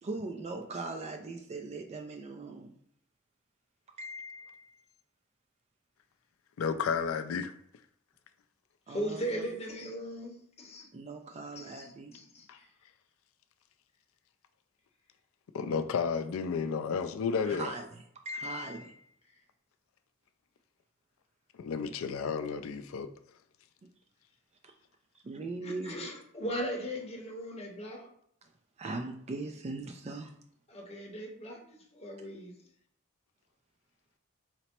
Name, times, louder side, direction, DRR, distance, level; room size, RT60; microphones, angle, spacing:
voice 1, 0.0-2.8 4.0-4.8 8.9-9.4 10.9-12.2 17.4-17.9 18.3-19.0 24.6-24.7 25.3-25.9 28.8-30.3, right 2 dB, 30° right, 0.3 m, -40 dB
voice 2, 6.6-7.5 12.5-12.6 15.5-17.7 21.6-23.1, left 6 dB, 75° left, 0.4 m, -32 dB
voice 3, 8.9-10.9 11.6-12.7 25.6-28.1 30.7-32.5, equal, 30° left, 0.8 m, -38 dB
4.3 x 2.0 x 4.2 m
head